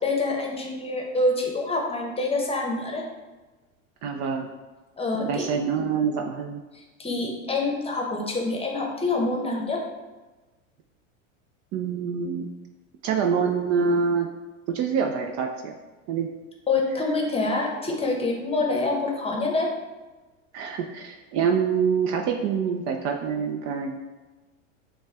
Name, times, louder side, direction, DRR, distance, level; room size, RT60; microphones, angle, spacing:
voice 1, 0.0-3.0 5.0-5.5 6.7-9.8 16.7-19.7, left 2 dB, 15° left, 0 dB, 0.9 m, -26 dB
voice 2, 4.0-4.5 5.1-6.6 11.7-12.5 13.0-14.3 14.7-15.8 16.1-16.3 20.5-24.0, right 6 dB, 45° right, 4 dB, 0.5 m, -26 dB
6.2 x 2.3 x 3.4 m, 1.2 s
hypercardioid pair, 95°, 39 cm